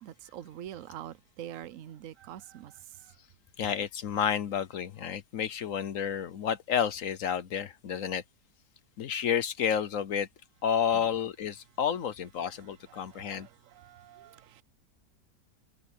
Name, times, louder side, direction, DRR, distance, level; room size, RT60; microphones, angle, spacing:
voice 1, 0.0-2.8 10.9-11.1 12.9-14.6, right 11 dB, 60° right, 0.9 m, -45 dB
voice 2, 3.6-8.2 9.0-10.3 10.6-13.5, left 8 dB, 60° left, 1.0 m, -30 dB
omnidirectional pair, 1.8 m